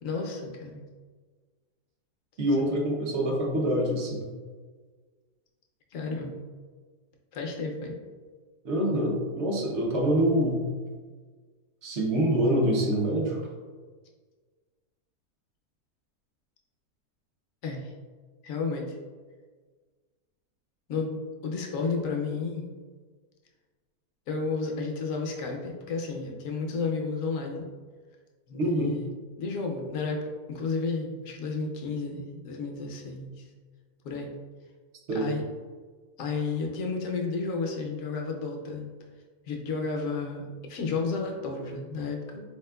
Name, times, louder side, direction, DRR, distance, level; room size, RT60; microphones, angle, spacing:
voice 1, 0.0-0.8 5.9-6.4 7.3-7.9 17.6-17.9 18.4-19.0 20.9-21.2 21.4-22.7 24.3-27.7 28.5-29.1 29.4-30.2 30.5-33.5 34.0-34.3 35.1-35.4 36.2-38.9 39.5-42.4, left 4 dB, 65° left, 1 dB, 0.9 m, -32 dB
voice 2, 2.4-4.2 8.6-10.6 11.8-13.5 28.6-28.9 35.1-35.3, right 1 dB, 55° right, -1 dB, 0.8 m, -25 dB
4.0 x 3.5 x 2.2 m, 1.5 s
omnidirectional pair, 1.7 m